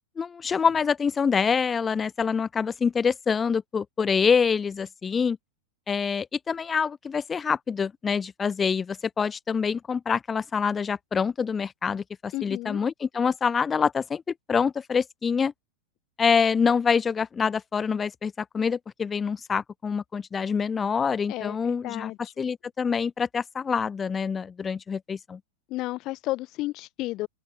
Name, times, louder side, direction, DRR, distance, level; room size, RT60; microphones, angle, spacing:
voice 1, 0.2-5.4 5.9-14.2 14.5-15.5 16.2-22.1 22.4-25.4, left 6 dB, 20° left, 0.4 m, -26 dB
voice 2, 12.3-12.8 21.3-22.3 25.7-27.3, left 18 dB, 40° left, 0.8 m, -32 dB
open air
figure-of-eight pair, 90°, 0 cm